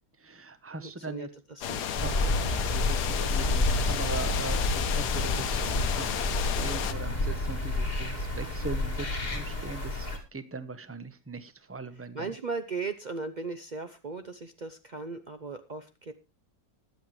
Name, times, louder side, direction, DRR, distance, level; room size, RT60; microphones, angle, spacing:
voice 1, 0.2-1.3 2.0-12.3, right 3 dB, 15° right, 12 dB, 0.5 m, -40 dB
voice 2, 0.8-2.0 12.1-16.1, right 4 dB, 70° right, 9 dB, 0.4 m, -37 dB
sound 1, 1.6-6.9, left 9 dB, 65° left, 1.4 m, -32 dB
sound 2, 1.9-10.2, left 2 dB, 30° left, 2.5 m, -29 dB
21.5 x 8.1 x 3.2 m, 0.27 s
omnidirectional pair, 2.0 m